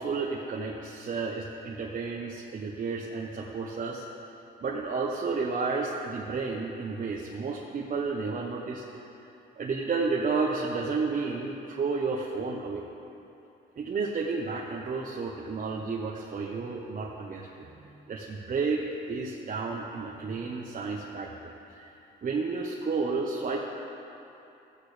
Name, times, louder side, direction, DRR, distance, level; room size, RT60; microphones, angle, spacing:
voice 1, 0.0-4.1 4.6-8.8 9.6-12.8 13.8-17.7 18.1-21.5 21.8-23.6, right 4 dB, 45° right, -2 dB, 1.0 m, -31 dB
15.0 x 8.6 x 3.4 m, 2.8 s
cardioid pair, 90°, 20 cm